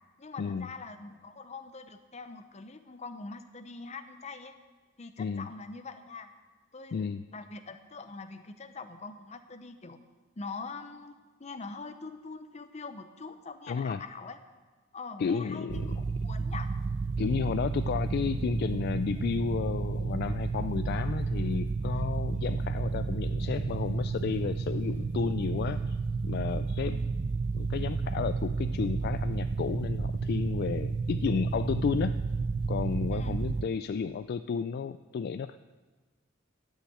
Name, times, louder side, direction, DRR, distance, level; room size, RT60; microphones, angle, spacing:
voice 1, 0.2-4.5 5.0-6.3 6.7-10.0 10.4-14.4 14.9-16.7 26.8-27.0 33.1-33.4, left 4 dB, 35° left, 9 dB, 0.7 m, -43 dB
voice 2, 5.2-5.5 6.9-7.2 13.7-14.0 15.2-16.0 17.2-26.0 26.2-27.0 27.5-32.1 32.7-35.6, left 6 dB, 55° left, 11 dB, 0.3 m, -32 dB
sound 1, 15.7-33.7, right 4 dB, 40° right, 0.3 m, -31 dB
11.5 x 6.4 x 7.9 m, 1.3 s
head